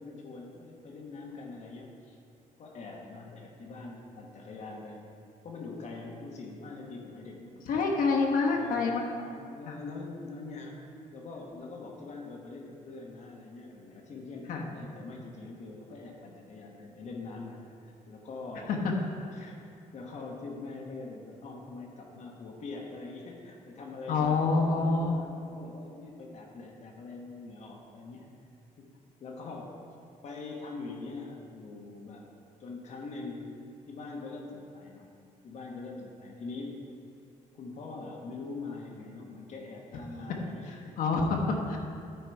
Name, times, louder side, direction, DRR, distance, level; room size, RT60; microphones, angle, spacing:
voice 1, 0.0-2.2 2.6-5.0 5.4-8.0 8.5-9.0 9.5-10.7 11.1-18.7 19.3-19.6 19.9-28.3 28.8-28.9 29.2-29.7 30.2-32.2 32.6-33.5 33.9-35.1 35.4-36.8 37.5-41.0, left 3 dB, 55° left, 0 dB, 1.2 m, -43 dB
voice 2, 7.7-9.4 9.7-9.8 14.5-14.7 18.7-18.8 19.2-19.3 24.1-25.2 40.7-41.8, left 4 dB, 80° left, 1 dB, 1.2 m, -27 dB
12.5 x 4.9 x 4.6 m, 2.5 s
cardioid pair, 160°, 14 cm